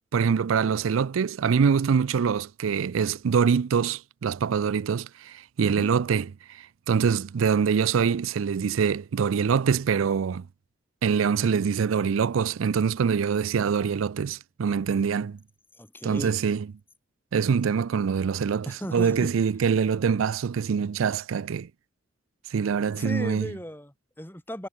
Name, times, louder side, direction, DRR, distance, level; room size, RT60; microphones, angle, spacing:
voice 1, 0.1-5.1 5.6-6.3 6.9-10.4 11.0-15.4 16.0-16.7 17.3-21.7 22.5-23.5, right 6 dB, 85° right, 0.4 m, -24 dB
voice 2, 15.8-16.4 18.7-19.3 22.9-24.7, equal, 10° left, 2.4 m, -36 dB
head